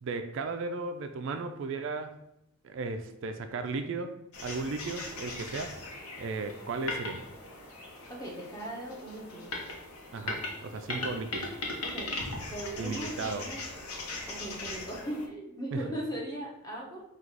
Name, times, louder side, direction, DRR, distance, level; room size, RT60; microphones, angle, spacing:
voice 1, 0.0-2.2 2.6-5.8 6.2-7.2 10.1-11.5 12.8-13.5 15.7-15.8, right 3 dB, 55° right, 7 dB, 0.3 m, -35 dB
sound 1, 4.3-15.3, left 2 dB, 90° left, 0.9 m, -39 dB
voice 2, 8.1-9.5 10.9-11.2 11.8-12.1 12.5-13.6 14.3-17.0, right 1 dB, 15° left, -3 dB, 0.9 m, -39 dB
3.8 x 2.4 x 4.5 m, 0.83 s
head